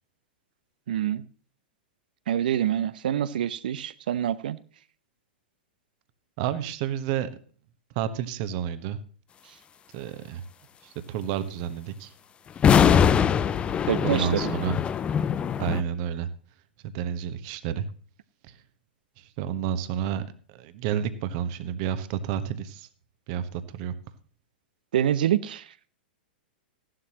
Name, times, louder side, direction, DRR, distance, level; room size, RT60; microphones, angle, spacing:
voice 1, 0.9-1.2 2.3-4.6 13.9-14.5 24.9-25.6, right 10 dB, 60° right, 16 dB, 0.8 m, -26 dB
voice 2, 6.4-7.3 7.9-9.0 9.9-10.4 10.8-12.1 13.7-14.7 15.6-16.3 16.8-17.9 18.5-18.6 19.2-20.2 20.5-22.9 23.3-23.9, right 9 dB, 45° right, 11 dB, 1.3 m, -30 dB
sound 1, 12.6-15.8, left 8 dB, 20° left, 0.6 m, -22 dB
15.0 x 11.5 x 3.0 m, 0.43 s
figure-of-eight pair, 100°, 5 cm